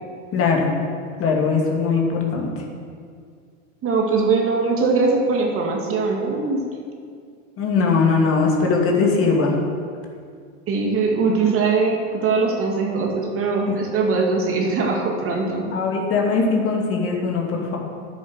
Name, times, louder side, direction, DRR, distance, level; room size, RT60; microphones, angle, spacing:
voice 1, 0.3-0.7 1.2-2.5 7.6-9.5 13.6-13.7 14.1-14.2 15.7-17.8, left 4 dB, 35° left, -1 dB, 2.6 m, -20 dB
voice 2, 3.8-6.7 10.7-15.7, right 4 dB, 35° right, 1 dB, 2.1 m, -21 dB
10.5 x 8.6 x 6.5 m, 2.2 s
hypercardioid pair, 95°, 39 cm